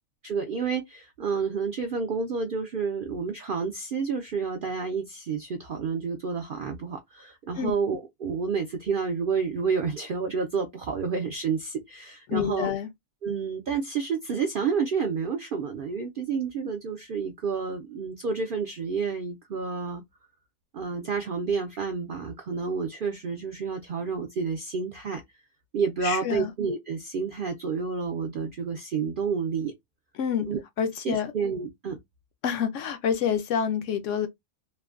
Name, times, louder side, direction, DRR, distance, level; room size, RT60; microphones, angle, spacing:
voice 1, 0.2-12.7 13.2-20.0 20.7-25.2 25.7-29.7 30.5-30.6 31.0-32.0, right 5 dB, 65° right, 0.5 m, -29 dB
voice 2, 12.3-12.9 26.0-26.5 30.1-30.5 30.8-31.3 32.4-34.3, left 8 dB, 70° left, 0.8 m, -27 dB
3.1 x 2.1 x 2.3 m
omnidirectional pair, 1.5 m